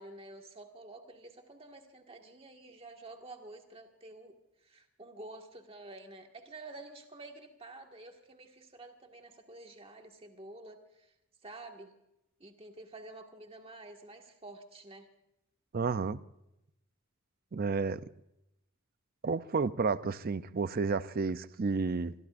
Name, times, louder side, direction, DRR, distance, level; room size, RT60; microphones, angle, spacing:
voice 1, 0.0-4.3 4.6-11.1 11.4-11.9 12.4-15.1, right 2 dB, 25° right, 1.7 m, -50 dB
voice 2, 15.7-16.2 17.5-18.0 19.2-22.1, right 4 dB, 40° right, 0.5 m, -31 dB
25.5 x 22.0 x 2.5 m
head